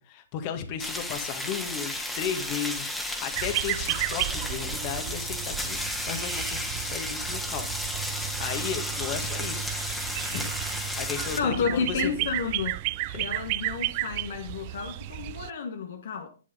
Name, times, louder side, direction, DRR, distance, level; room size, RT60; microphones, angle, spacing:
voice 1, 0.0-5.8 6.1-7.7 8.0-12.1 13.1-13.3, left 8 dB, 35° left, 1.9 m, -35 dB
sound 1, 0.8-11.4, left 1 dB, 5° left, 1.9 m, -33 dB
sound 2, 3.3-15.5, right 18 dB, 40° right, 0.4 m, -33 dB
voice 2, 11.4-12.8 13.2-16.3, left 6 dB, 55° left, 1.5 m, -31 dB
11.5 x 9.9 x 3.9 m
figure-of-eight pair, 115°, 0 cm